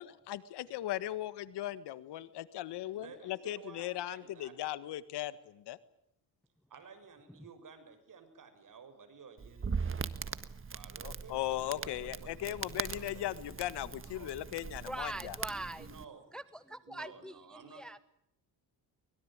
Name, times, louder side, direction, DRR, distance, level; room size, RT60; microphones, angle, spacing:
voice 1, 0.0-5.8 11.0-15.4, left 14 dB, 80° left, 15 dB, 1.7 m, -38 dB
voice 2, 2.9-4.5 6.7-10.4 10.7-13.3 14.0-14.3 15.8-16.2 16.8-17.8, right 5 dB, 50° right, 9 dB, 6.7 m, -53 dB
Crackle, 9.4-16.0, right 5 dB, 30° right, 1.6 m, -40 dB
voice 3, 14.8-15.9 16.3-18.0, right 1 dB, ahead, 14 dB, 0.9 m, -42 dB
24.0 x 21.5 x 9.0 m, 0.76 s
cardioid pair, 90°, 40 cm